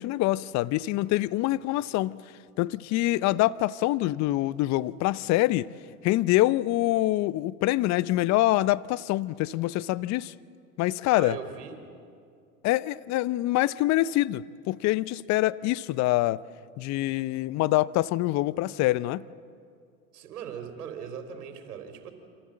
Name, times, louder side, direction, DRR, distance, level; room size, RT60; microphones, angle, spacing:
voice 1, 0.0-2.2 2.6-5.7 6.0-10.3 10.8-11.4 12.6-16.4 16.8-19.2, left 17 dB, 40° left, 0.7 m, -25 dB
voice 2, 11.1-11.7 20.1-22.1, right 7 dB, 80° right, 3.8 m, -39 dB
28.0 x 27.0 x 7.7 m
hypercardioid pair, 95°, 45 cm